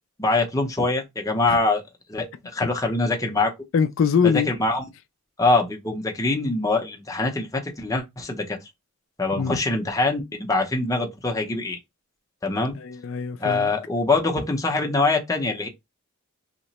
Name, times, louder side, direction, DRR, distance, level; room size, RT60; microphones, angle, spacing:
voice 1, 0.2-1.8 2.1-3.5 4.2-4.8 5.4-8.6 9.2-11.8 12.4-12.8 13.4-15.7, left 3 dB, 15° left, 0.6 m, -24 dB
voice 2, 3.7-4.5 9.3-9.6 12.8-13.7, left 6 dB, 60° left, 0.3 m, -23 dB
2.9 x 2.1 x 4.0 m
head